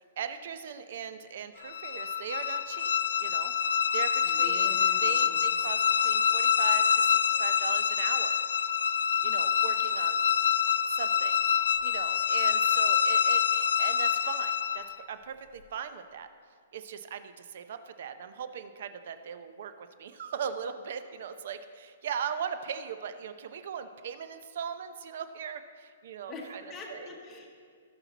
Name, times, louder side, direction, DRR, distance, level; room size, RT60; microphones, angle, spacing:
voice 1, 0.0-2.9 3.2-4.7 5.0-8.4 9.2-10.2 10.9-11.4 11.8-16.3 16.7-26.6 26.9-27.1, right 7 dB, 45° right, 10 dB, 0.6 m, -39 dB
sound 1, 1.6-15.0, left 8 dB, 85° left, 0.5 m, -26 dB
voice 2, 4.2-5.5 26.3-27.5, left 3 dB, 10° left, -3 dB, 1.0 m, -44 dB
17.5 x 6.0 x 4.0 m, 2.1 s
hypercardioid pair, 175°, 0 cm